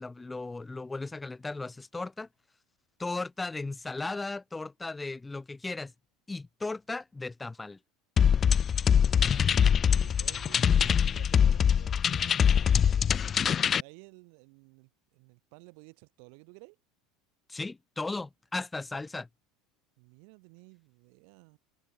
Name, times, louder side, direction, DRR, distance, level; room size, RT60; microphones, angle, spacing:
voice 1, 0.0-2.3 3.0-5.9 6.3-7.8 17.5-19.3, left 3 dB, 15° left, 0.8 m, -36 dB
sound 1, 8.2-13.8, left 8 dB, 35° left, 0.4 m, -23 dB
voice 2, 8.7-16.8 20.0-21.6, right 40 dB or more, 60° right, 3.4 m, -55 dB
open air
hypercardioid pair, 75°, 0 cm